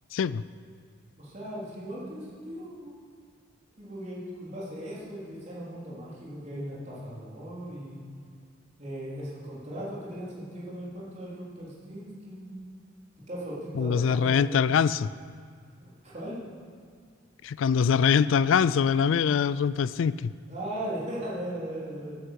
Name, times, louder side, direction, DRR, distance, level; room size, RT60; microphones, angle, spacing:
voice 1, 0.1-0.4 13.8-15.1 17.4-20.3, left 7 dB, 70° left, 17 dB, 0.3 m, -23 dB
voice 2, 1.2-2.9 3.8-8.0 8.8-12.5 13.3-14.6 15.8-16.4 20.5-22.2, right 1 dB, 35° right, -7 dB, 3.9 m, -38 dB
14.0 x 10.0 x 6.5 m, 2.1 s
head